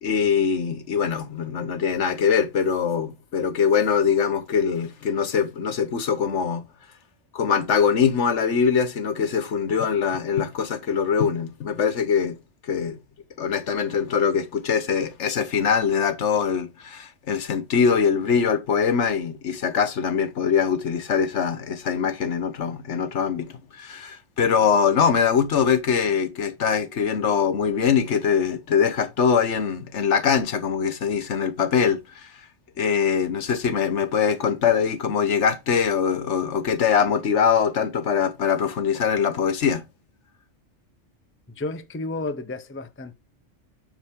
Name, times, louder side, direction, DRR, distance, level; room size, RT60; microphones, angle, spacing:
voice 1, 0.0-6.6 7.3-12.4 12.7-13.0 13.4-32.3 32.8-39.8, left 6 dB, 75° left, 1.3 m, -23 dB
voice 2, 41.5-43.1, left 2 dB, 15° left, 0.5 m, -32 dB
7.2 x 6.3 x 3.6 m
omnidirectional pair, 1.2 m